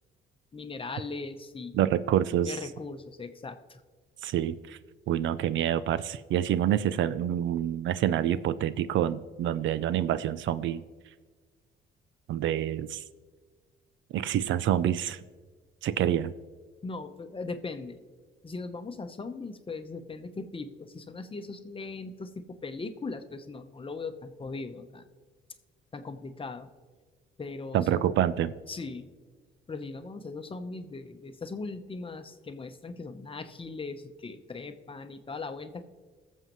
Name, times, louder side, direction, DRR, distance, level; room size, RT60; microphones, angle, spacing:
voice 1, 0.5-1.8 2.4-3.8 16.8-18.0 18.4-25.0 25.9-26.7 27.4-28.1 28.7-29.1 29.7-35.8, left 3 dB, 25° left, 8 dB, 0.9 m, -39 dB
voice 2, 1.7-2.5 4.2-4.8 5.1-10.8 12.3-13.0 14.1-15.2 15.8-16.3 27.7-28.5, right 11 dB, 70° right, 16 dB, 0.5 m, -27 dB
21.0 x 7.3 x 3.1 m, 1.4 s
cardioid pair, 90°, 20 cm